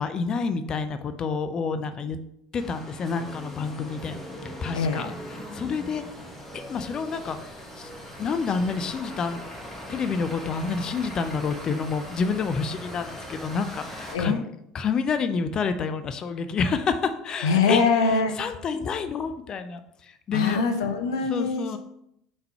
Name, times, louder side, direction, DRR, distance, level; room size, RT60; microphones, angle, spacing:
voice 1, 0.0-2.2 2.5-4.2 4.6-5.1 5.5-6.0 6.5-7.5 7.8-9.4 9.9-14.4 14.7-17.8 18.4-19.8 20.3-20.6 21.3-21.8, left 5 dB, 35° left, 9 dB, 0.6 m, -28 dB
sound 1, 2.6-14.2, equal, 10° left, 1.6 m, -40 dB
voice 2, 4.7-5.1 14.1-14.4 17.4-18.3 20.3-21.8, left 4 dB, 65° left, 5 dB, 0.9 m, -23 dB
5.7 x 3.4 x 5.7 m, 0.76 s
figure-of-eight pair, 70°, 2 cm